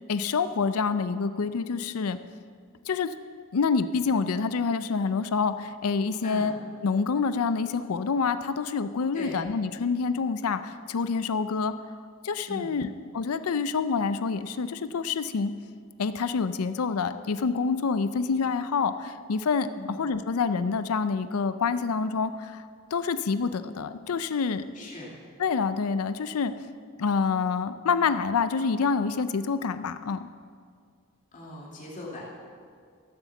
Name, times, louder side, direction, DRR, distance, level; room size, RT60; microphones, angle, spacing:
voice 1, 0.1-2.2 2.9-3.1 3.5-6.5 6.8-11.7 12.2-15.5 16.0-22.7 22.9-24.6 25.4-26.5 27.0-30.3, left 5 dB, 80° left, 12 dB, 0.5 m, -27 dB
voice 2, 24.7-25.1 31.3-32.3, left 2 dB, 35° left, -5 dB, 2.5 m, -39 dB
14.0 x 7.1 x 7.0 m, 2.1 s
head